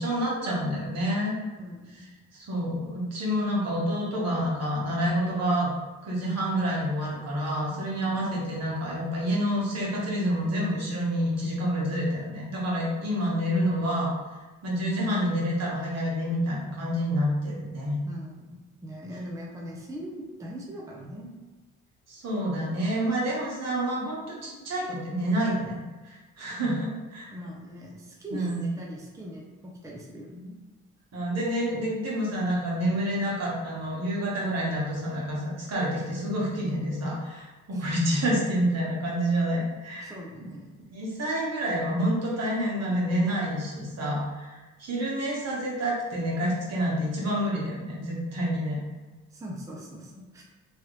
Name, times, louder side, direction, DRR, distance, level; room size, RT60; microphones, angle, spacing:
voice 1, 0.0-1.3 2.3-5.7 6.0-14.1 14.6-18.0 22.1-25.8 26.0-27.3 28.3-28.6 31.1-40.1 40.9-48.8, equal, 55° right, -4 dB, 1.2 m, -28 dB
voice 2, 1.6-2.1 7.9-8.1 18.0-21.4 27.3-30.6 37.7-37.8 40.0-40.8 49.3-50.4, equal, 10° right, -3 dB, 0.6 m, -41 dB
3.1 x 2.5 x 3.1 m, 1.3 s
cardioid pair, 90°, 30 cm